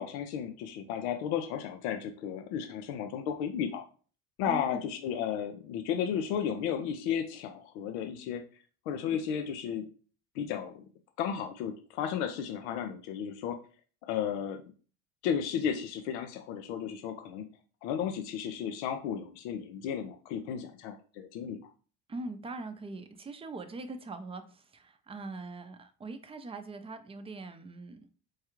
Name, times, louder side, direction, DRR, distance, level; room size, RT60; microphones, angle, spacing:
voice 1, 0.0-3.8 4.4-8.4 8.9-9.9 10.4-10.8 11.2-13.6 14.0-14.6 15.2-17.4 17.8-21.6, left 8 dB, 90° left, 6 dB, 0.6 m, -34 dB
voice 2, 4.5-4.9 22.1-28.0, right 2 dB, 15° right, 8 dB, 0.5 m, -42 dB
4.6 x 2.3 x 3.0 m, 0.39 s
supercardioid pair, 90°, 33 cm